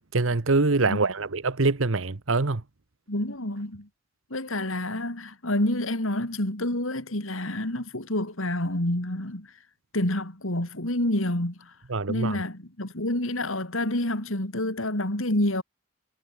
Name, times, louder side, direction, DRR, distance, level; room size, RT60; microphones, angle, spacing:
voice 1, 0.1-2.6 11.9-12.4, right 3 dB, 75° right, 1.0 m, -24 dB
voice 2, 3.1-3.9 4.3-9.5 9.9-11.7 12.1-15.6, left 1 dB, 80° left, 4.2 m, -28 dB
head